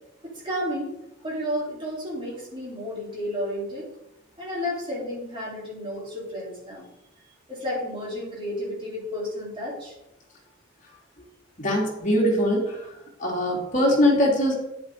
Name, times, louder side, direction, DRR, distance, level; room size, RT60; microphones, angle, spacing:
voice 1, 0.2-0.9 1.2-3.8 4.4-6.9 7.5-9.9, equal, 25° right, -6 dB, 3.9 m, -32 dB
voice 2, 11.6-12.8 13.2-14.5, equal, 35° left, -2 dB, 2.7 m, -22 dB
9.5 x 8.0 x 3.9 m, 0.89 s
head